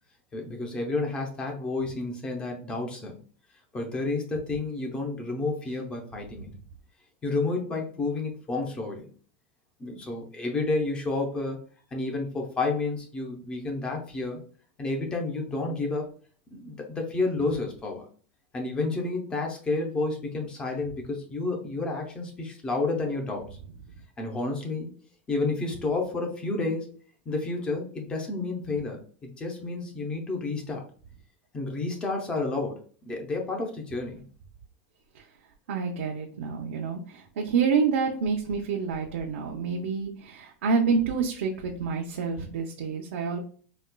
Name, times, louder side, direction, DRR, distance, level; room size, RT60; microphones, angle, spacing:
voice 1, 0.3-3.2 3.7-6.5 7.2-9.1 9.8-11.6 11.9-14.4 14.8-16.1 16.5-18.1 18.5-23.5 24.2-24.9 25.3-26.9 27.3-30.8 31.5-34.2, left 3 dB, 15° left, 2 dB, 0.6 m, -30 dB
voice 2, 35.7-43.4, right 5 dB, 75° right, 0 dB, 0.6 m, -28 dB
4.2 x 2.3 x 2.2 m, 0.44 s
supercardioid pair, 165°, 7 cm